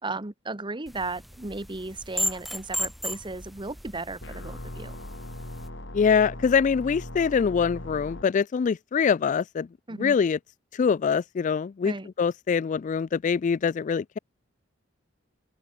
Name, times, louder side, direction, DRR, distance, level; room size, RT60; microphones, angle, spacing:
voice 1, 0.0-4.9 9.9-10.2 11.8-12.1, right 3 dB, 25° right, 1.4 m, -35 dB
sound 1, 0.9-5.7, equal, ahead, 3.4 m, -35 dB
sound 2, 4.2-8.2, left 1 dB, 65° left, 4.6 m, -39 dB
voice 2, 5.9-9.7 10.0-10.4 10.7-14.2, left 6 dB, 40° left, 0.3 m, -24 dB
open air
head